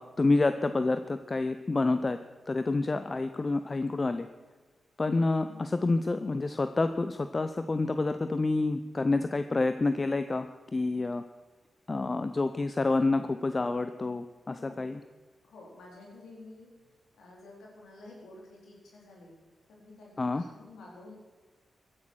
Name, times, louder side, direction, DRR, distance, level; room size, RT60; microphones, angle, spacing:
voice 1, 0.0-2.2 2.5-4.3 5.0-10.5 10.7-11.2 11.9-15.0 20.2-20.4, left 3 dB, 40° left, 10 dB, 0.7 m, -28 dB
voice 2, 15.4-16.7 17.2-19.3 19.8-21.1, left 2 dB, 80° left, -2 dB, 4.1 m, -50 dB
15.0 x 9.9 x 6.3 m, 1.3 s
supercardioid pair, 45°, 0 cm